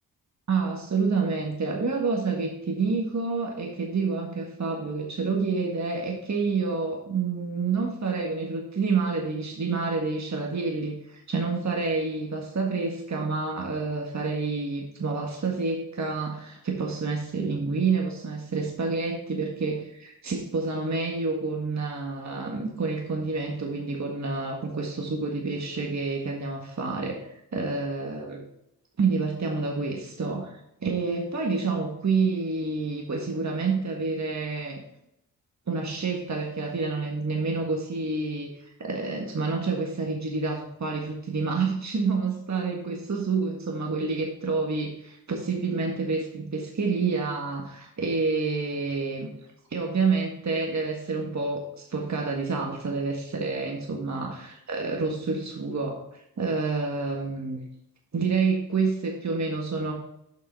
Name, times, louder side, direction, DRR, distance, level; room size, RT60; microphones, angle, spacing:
voice 1, 0.5-27.2 27.5-28.4 29.0-30.5 30.8-34.8 35.7-38.5 38.8-49.3 49.7-56.0 56.4-57.6 58.1-59.9, right 4 dB, 45° right, 0 dB, 1.7 m, -28 dB
7.5 x 5.5 x 4.8 m, 0.80 s
supercardioid pair, 50°, 41 cm